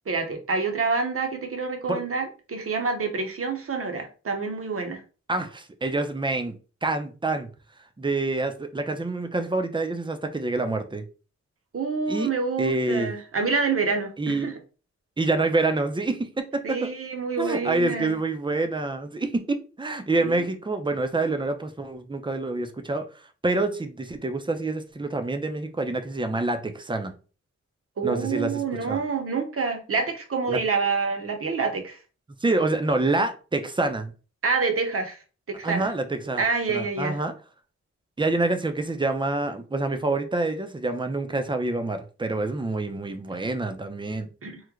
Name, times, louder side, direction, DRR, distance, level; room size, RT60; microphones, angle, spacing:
voice 1, 0.1-5.0 11.7-14.5 16.6-18.1 20.2-20.4 28.0-32.0 34.4-35.2 35.5-35.9 36.4-37.2 44.4-44.6, right 4 dB, 50° right, 0.7 m, -27 dB
voice 2, 5.3-6.5 6.8-7.5 8.0-11.0 12.1-12.3 12.6-13.1 14.2-14.5 15.2-16.9 17.4-23.0 23.4-27.1 28.0-28.6 28.9-29.0 30.5-30.6 32.4-34.1 35.6-36.4 36.7-37.3 38.2-44.3, right 2 dB, 15° right, 0.4 m, -27 dB
3.1 x 2.1 x 3.5 m
wide cardioid pair, 115°, 29 cm